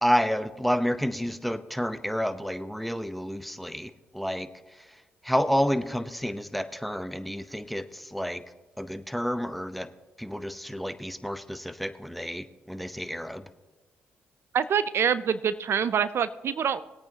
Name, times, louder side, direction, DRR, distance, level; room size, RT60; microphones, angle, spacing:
voice 1, 0.0-4.5 5.2-8.4 8.8-9.9 10.2-13.4, equal, ahead, 11 dB, 0.8 m, -29 dB
voice 2, 14.5-16.8, right 7 dB, 60° right, 15 dB, 0.4 m, -25 dB
21.0 x 8.7 x 2.8 m, 1.2 s
supercardioid pair, 55°, 5 cm